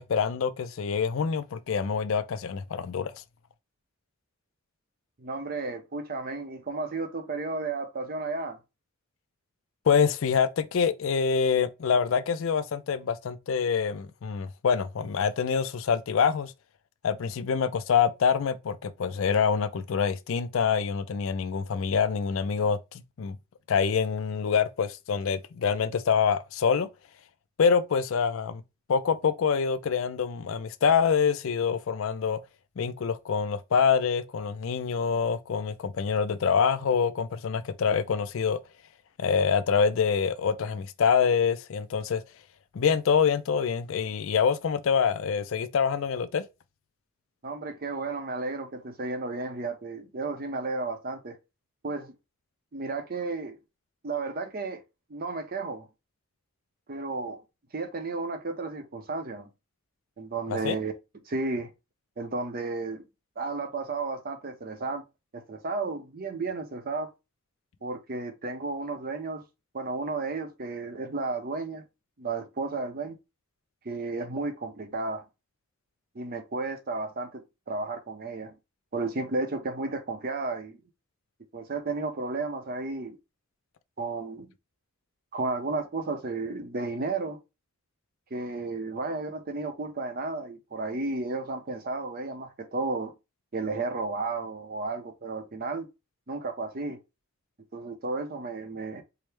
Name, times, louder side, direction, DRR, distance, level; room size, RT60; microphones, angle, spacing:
voice 1, 0.0-3.1 9.9-16.5 17.0-23.4 23.7-26.9 27.6-28.6 28.9-32.4 32.8-38.6 39.2-42.2 42.7-46.4 60.5-60.8, left 6 dB, 60° left, 0.4 m, -26 dB
voice 2, 5.2-8.6 47.4-51.4 51.8-52.1 52.7-53.6 54.0-54.8 55.1-55.9 56.9-57.4 57.7-59.5 60.2-60.9 61.3-61.7 62.2-63.0 63.4-65.0 65.3-67.1 67.8-69.4 69.7-71.8 72.2-73.2 73.8-75.2 76.1-78.5 78.9-80.8 81.5-83.2 84.0-84.5 85.3-87.4 88.3-93.1 93.5-95.9 96.3-97.0 97.7-99.0, right 3 dB, 40° right, 0.6 m, -33 dB
4.6 x 2.0 x 3.3 m
head